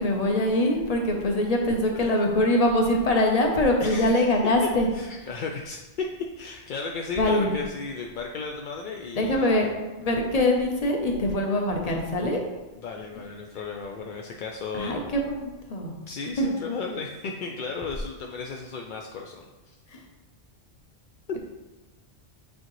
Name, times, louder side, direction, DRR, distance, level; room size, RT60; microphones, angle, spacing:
voice 1, 0.0-4.9 7.2-7.5 9.1-9.7 10.0-12.4 14.7-15.9 16.4-16.5, left 1 dB, 35° left, 1 dB, 0.9 m, -23 dB
voice 2, 3.8-4.3 4.9-6.1 6.4-9.7 12.8-14.9 16.1-19.8 21.3-21.4, left 4 dB, 60° left, 1 dB, 0.5 m, -35 dB
8.5 x 3.9 x 3.1 m, 1.1 s
omnidirectional pair, 1.2 m